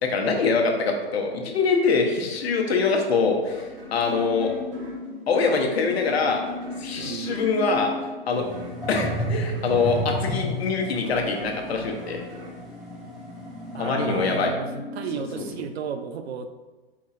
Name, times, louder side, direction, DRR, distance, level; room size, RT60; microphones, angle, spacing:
voice 1, 0.0-4.5 5.3-6.4 6.8-7.9 8.3-8.5 8.9-12.2 13.8-14.5 15.4-15.5, left 4 dB, 70° left, 2 dB, 0.9 m, -24 dB
sound 1, 3.5-15.5, left 2 dB, 30° left, 0.9 m, -39 dB
sound 2, 3.5-13.7, right 2 dB, 60° right, 1.3 m, -44 dB
voice 2, 7.0-7.4 13.7-16.5, right 7 dB, 75° right, 9 dB, 0.6 m, -34 dB
sound 3, 8.3-14.4, equal, ahead, 0.6 m, -33 dB
4.6 x 2.4 x 4.1 m, 1.2 s
hypercardioid pair, 135°, 32 cm